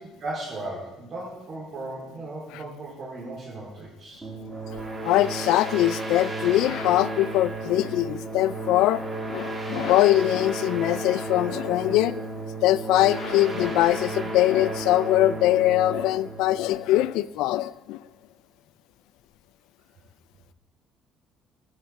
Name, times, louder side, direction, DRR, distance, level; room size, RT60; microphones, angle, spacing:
voice 1, 0.0-4.2, right 2 dB, 45° right, -7 dB, 3.3 m, -36 dB
sound 1, 4.2-17.5, right 2 dB, 15° right, 2.4 m, -33 dB
voice 2, 5.0-9.0 9.3-12.2 12.6-18.0, left 15 dB, 85° left, 17 dB, 0.3 m, -22 dB
13.5 x 6.5 x 4.6 m, 0.97 s
cardioid pair, 115°, 0 cm